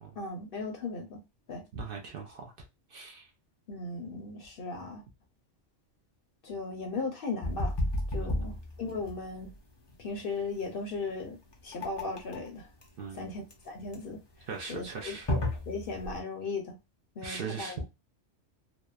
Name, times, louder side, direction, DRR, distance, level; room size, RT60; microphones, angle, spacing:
voice 1, 0.2-1.2 1.5-1.7 3.7-5.0 6.4-7.7 8.1-9.5 10.0-11.4 11.6-12.7 13.1-14.2 14.7-16.8 17.2-17.8, left 3 dB, 60° left, 0.7 m, -37 dB
voice 2, 1.7-2.5 2.9-3.3 8.2-8.6 13.0-13.3 14.5-15.3 17.2-17.8, right 5 dB, 60° right, 0.7 m, -39 dB
sound 1, 7.4-16.2, left 1 dB, 40° left, 0.4 m, -34 dB
2.8 x 2.0 x 2.3 m
omnidirectional pair, 1.2 m